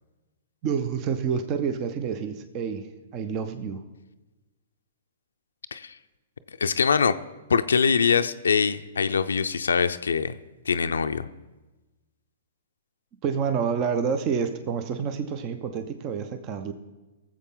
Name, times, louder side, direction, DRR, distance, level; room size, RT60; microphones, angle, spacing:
voice 1, 0.6-2.9 3.1-3.8 13.2-16.7, right 6 dB, 35° right, 9 dB, 0.7 m, -28 dB
voice 2, 6.6-7.1 7.5-10.3 10.7-11.3, left 6 dB, 85° left, 9 dB, 0.4 m, -23 dB
17.5 x 7.4 x 3.8 m, 1.1 s
hypercardioid pair, 125°, 0 cm